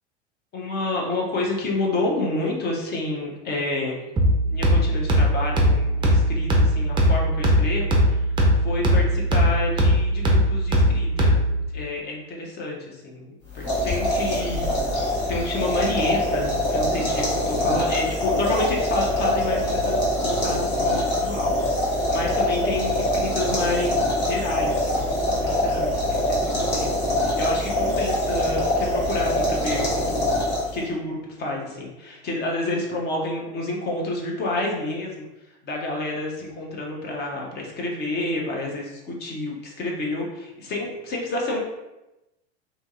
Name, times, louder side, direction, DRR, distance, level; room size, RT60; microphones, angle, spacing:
voice 1, 0.5-4.0 4.5-8.2 8.6-21.5 21.9-30.2 30.7-35.3 35.6-41.6, left 2 dB, 30° left, -1 dB, 0.7 m, -29 dB
sound 1, 4.2-11.7, equal, 15° right, 0.5 m, -20 dB
sound 2, 13.5-30.9, left 1 dB, 60° left, 1.3 m, -24 dB
2.8 x 2.7 x 2.3 m, 0.96 s
hypercardioid pair, 85°, 34 cm